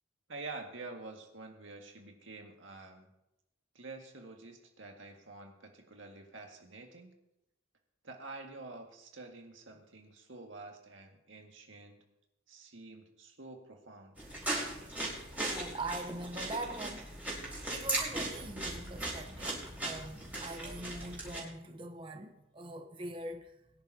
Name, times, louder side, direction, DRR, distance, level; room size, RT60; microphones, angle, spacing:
voice 1, 0.3-3.1 3.7-7.1 8.0-12.0 12.5-14.2, right 3 dB, 90° right, 1.9 m, -48 dB
sound 1, 14.2-21.4, right 1 dB, 10° right, 4.0 m, -38 dB
voice 2, 15.4-23.5, right 2 dB, 25° right, 1.0 m, -43 dB
22.0 x 10.5 x 2.9 m
head